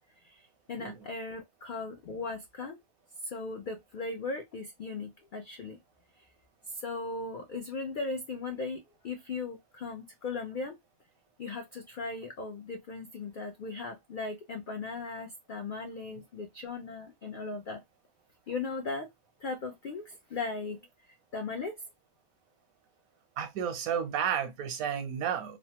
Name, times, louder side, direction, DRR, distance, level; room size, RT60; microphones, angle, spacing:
voice 1, 0.2-2.8 3.2-5.8 6.2-6.3 6.7-10.7 11.4-17.8 18.5-19.1 19.4-21.7, left 3 dB, 90° left, 0.4 m, -38 dB
voice 2, 23.4-25.6, right 8 dB, 85° right, 1.1 m, -32 dB
3.0 x 2.0 x 2.8 m
omnidirectional pair, 1.4 m